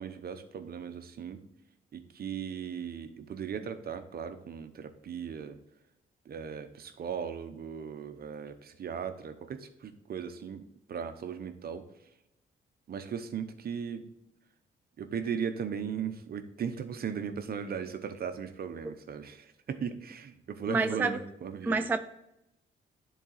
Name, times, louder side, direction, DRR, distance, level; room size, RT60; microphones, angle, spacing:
voice 1, 0.0-1.4 1.9-5.6 6.3-10.6 10.9-11.8 12.9-14.1 15.0-21.8, right 7 dB, 50° right, 9 dB, 0.8 m, -37 dB
voice 2, 20.7-21.2 21.6-22.0, right 3 dB, 10° right, 8 dB, 0.3 m, -27 dB
10.0 x 4.0 x 4.0 m, 0.86 s
cardioid pair, 90°, 20 cm